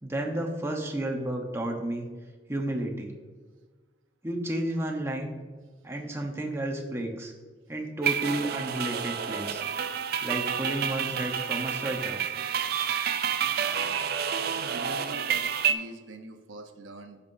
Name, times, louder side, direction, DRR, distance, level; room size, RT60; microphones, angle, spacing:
voice 1, 0.0-2.1 2.5-3.1 4.2-5.4 5.8-7.3 7.7-9.6 10.2-12.2, right 1 dB, 15° right, 1 dB, 0.9 m, -32 dB
sound 1, 8.0-15.7, right 8 dB, 50° right, 0.5 m, -29 dB
voice 2, 13.5-13.9 14.5-17.2, right 2 dB, 90° right, 6 dB, 0.9 m, -43 dB
14.0 x 5.5 x 2.7 m, 1.4 s
head